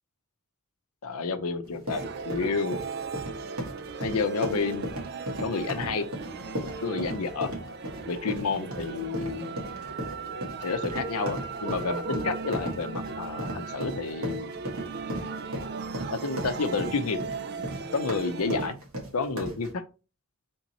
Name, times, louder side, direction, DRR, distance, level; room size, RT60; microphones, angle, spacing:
voice 1, 1.0-2.8 4.0-4.9 5.4-6.1 6.8-7.5 8.1-9.6 10.6-14.5 16.1-17.2 17.9-18.8 19.1-19.8, left 4 dB, 85° left, 10 dB, 0.6 m, -30 dB
sound 1, 1.6-19.7, equal, 75° right, 1.4 m, -36 dB
sound 2, 1.9-18.7, right 4 dB, 50° right, 0.4 m, -37 dB
3.6 x 2.9 x 4.1 m, 0.33 s
head